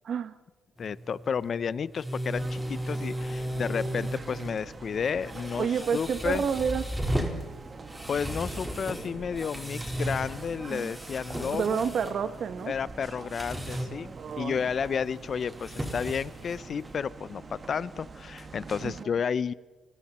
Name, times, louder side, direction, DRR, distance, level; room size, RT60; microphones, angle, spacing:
voice 1, 0.8-6.4 8.1-11.9 12.7-14.1 14.4-19.5, left 6 dB, 50° left, 19 dB, 0.6 m, -32 dB
sound 1, 0.8-17.0, right 1 dB, 10° right, 4.2 m, -36 dB
sound 2, 2.4-19.0, right 4 dB, 35° right, 2.2 m, -45 dB
voice 2, 5.6-6.9 11.5-12.7 14.2-14.7 18.8-19.1, right 7 dB, 55° right, 12 dB, 1.4 m, -29 dB
30.0 x 21.0 x 4.3 m, 1.2 s
cardioid pair, 90°, 0 cm